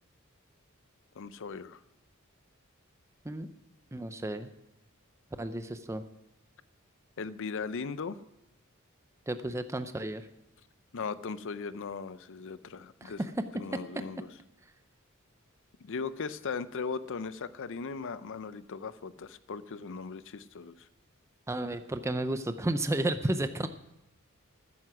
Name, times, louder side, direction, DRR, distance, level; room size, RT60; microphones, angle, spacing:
voice 1, 1.2-1.8 7.2-8.2 10.9-13.2 13.5-14.3 15.8-20.9, left 5 dB, 60° left, 15 dB, 0.6 m, -38 dB
voice 2, 3.9-4.5 5.4-6.0 9.3-10.3 13.0-13.4 13.9-14.2 21.5-23.7, right 1 dB, 15° right, 10 dB, 0.5 m, -32 dB
13.5 x 9.6 x 6.0 m, 0.89 s
head